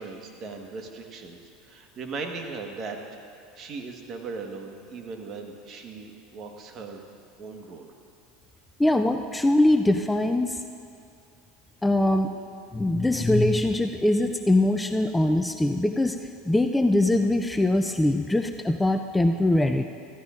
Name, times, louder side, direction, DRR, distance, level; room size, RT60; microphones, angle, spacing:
voice 1, 0.0-3.0 3.6-7.0 7.4-7.9, right 4 dB, 45° right, 3 dB, 1.4 m, -38 dB
voice 2, 8.8-10.6 11.8-12.3 12.7-16.2 16.5-19.8, left 1 dB, 10° left, 7 dB, 0.4 m, -22 dB
15.5 x 14.0 x 2.5 m, 2.5 s
supercardioid pair, 100°, 0 cm